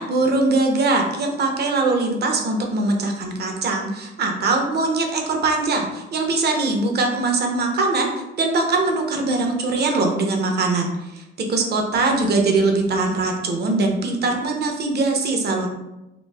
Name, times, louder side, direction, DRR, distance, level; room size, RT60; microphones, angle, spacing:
voice 1, 0.0-15.7, right 3 dB, 55° right, 2 dB, 0.7 m, -22 dB
3.0 x 2.5 x 3.4 m, 0.96 s
cardioid pair, 90°, 20 cm